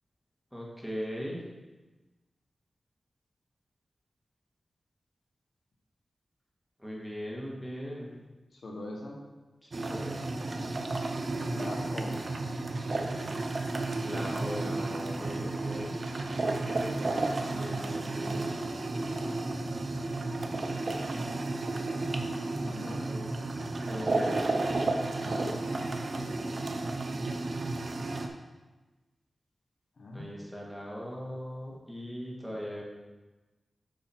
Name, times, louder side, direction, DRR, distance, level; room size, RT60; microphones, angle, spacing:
voice 1, 0.5-1.4 6.8-8.1 9.6-10.2 14.0-16.0 17.5-18.6 22.8-23.3 23.9-24.8 30.1-32.8, equal, ahead, -4 dB, 1.9 m, -39 dB
voice 2, 8.5-9.2 11.4-12.2 22.5-23.0 25.2-25.6 26.1-26.5 30.0-30.3, left 1 dB, 70° left, 0 dB, 1.3 m, -42 dB
sound 1, 9.7-28.3, right 2 dB, 55° right, 0.7 m, -32 dB
7.6 x 5.6 x 4.6 m, 1.2 s
wide cardioid pair, 80°, 0 cm